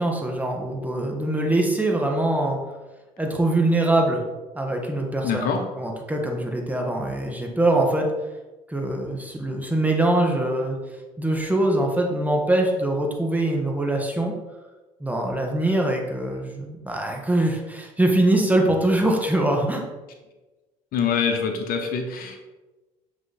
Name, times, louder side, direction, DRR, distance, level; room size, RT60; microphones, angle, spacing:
voice 1, 0.0-2.6 3.2-4.2 4.5-5.5 5.8-8.1 8.7-10.8 11.2-14.3 15.0-19.8, right 1 dB, 10° right, 1 dB, 1.4 m, -23 dB
voice 2, 5.2-5.6 20.9-22.4, left 6 dB, 60° left, 4 dB, 0.9 m, -24 dB
7.0 x 3.2 x 4.1 m, 1.1 s
hypercardioid pair, 60°, 17 cm